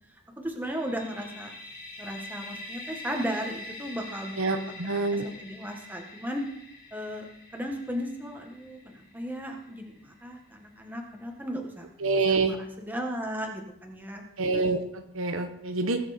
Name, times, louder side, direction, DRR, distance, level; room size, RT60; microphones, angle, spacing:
voice 1, 0.4-1.5 2.0-6.4 6.9-14.2, equal, 10° right, 1 dB, 1.8 m, -36 dB
sound 1, 0.6-10.3, left 1 dB, 45° left, 3.0 m, -45 dB
voice 2, 4.4-5.3 12.0-12.5 14.4-16.0, right 3 dB, 65° right, 6 dB, 1.2 m, -27 dB
19.5 x 7.7 x 4.4 m, 0.76 s
head